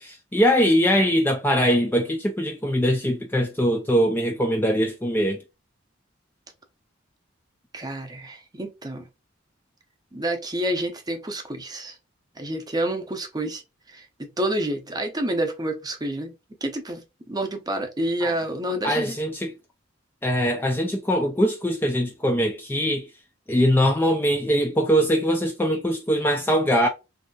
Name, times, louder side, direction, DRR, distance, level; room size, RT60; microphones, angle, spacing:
voice 1, 0.0-5.4 18.2-18.3 18.8-19.5 20.2-23.1 23.5-26.9, equal, 10° left, 0.3 m, -22 dB
voice 2, 7.7-9.1 10.1-12.0 12.4-13.6 13.9-14.1 14.4-16.3 16.6-19.2, right 1 dB, 20° right, 0.6 m, -28 dB
3.1 x 2.7 x 2.7 m
head